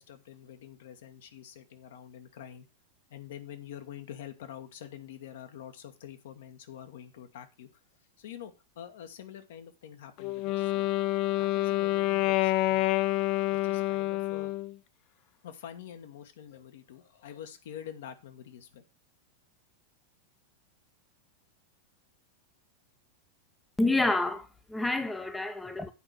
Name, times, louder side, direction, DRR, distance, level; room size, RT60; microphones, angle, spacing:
voice 1, 0.0-2.7 3.1-7.7 8.2-10.9 11.4-12.9 13.5-14.5 15.4-18.8, left 9 dB, 55° left, 1.3 m, -46 dB
Wind instrument woodwind instrument, 10.2-14.7, left 17 dB, 40° left, 0.5 m, -28 dB
voice 2, 23.8-25.9, left 2 dB, 5° left, 0.8 m, -28 dB
8.9 x 5.0 x 6.0 m
figure-of-eight pair, 90°, 0 cm